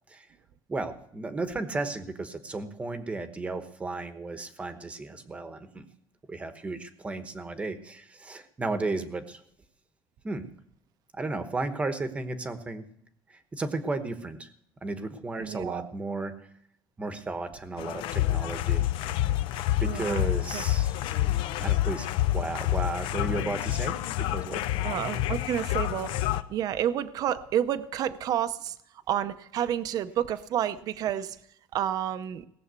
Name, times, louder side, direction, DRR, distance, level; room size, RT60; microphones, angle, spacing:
voice 1, 0.7-5.8 6.3-9.4 10.2-10.5 11.1-12.8 13.3-14.5 14.8-16.3 17.0-18.8 19.8-21.0 21.6-22.1 22.3-24.0 24.3-24.6, right 3 dB, 15° right, 9 dB, 1.0 m, -34 dB
voice 2, 15.4-15.9 19.8-20.2 20.5-20.6 24.8-26.1 26.5-28.8 29.1-31.4 31.7-32.4, right 10 dB, 45° right, 12 dB, 0.7 m, -30 dB
sound 1, 17.8-26.4, left 14 dB, 70° left, 0.7 m, -28 dB
18.0 x 7.1 x 8.1 m, 0.73 s
cardioid pair, 175°, 9 cm